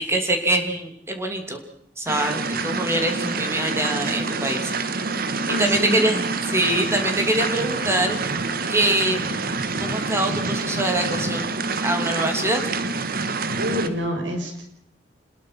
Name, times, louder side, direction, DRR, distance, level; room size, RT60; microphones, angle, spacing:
voice 1, 0.0-1.6 2.0-4.7 5.1-5.2 5.6-8.4 8.7-9.4 9.8-11.5 11.8-12.6, right 1 dB, 15° right, 4 dB, 2.9 m, -24 dB
sound 1, 2.1-13.9, right 3 dB, 55° right, 1.7 m, -27 dB
voice 2, 5.5-6.0 13.5-14.6, equal, 90° right, 3 dB, 6.6 m, -26 dB
27.0 x 20.5 x 6.0 m, 0.70 s
head